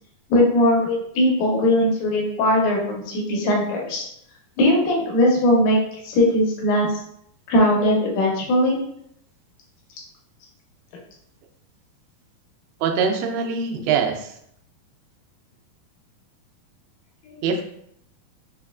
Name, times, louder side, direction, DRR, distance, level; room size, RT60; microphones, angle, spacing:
voice 1, 0.3-4.0 4.6-5.8 6.0-6.9 7.5-8.8 17.3-17.4, left 1 dB, 75° left, -1 dB, 2.2 m, -19 dB
voice 2, 12.8-14.3 17.4-17.6, right 6 dB, 90° right, 4 dB, 2.5 m, -23 dB
5.9 x 2.4 x 2.3 m, 0.73 s
omnidirectional pair, 4.4 m